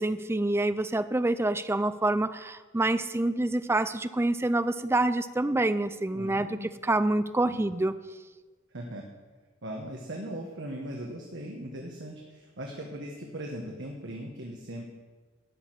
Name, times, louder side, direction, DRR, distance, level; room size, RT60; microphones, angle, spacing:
voice 1, 0.0-7.9, right 2 dB, 10° right, 12 dB, 0.4 m, -27 dB
voice 2, 6.1-7.0 7.5-7.6 8.7-9.0 9.6-14.9, right 1 dB, 60° right, 0 dB, 1.5 m, -39 dB
12.5 x 6.4 x 9.2 m, 1.3 s
head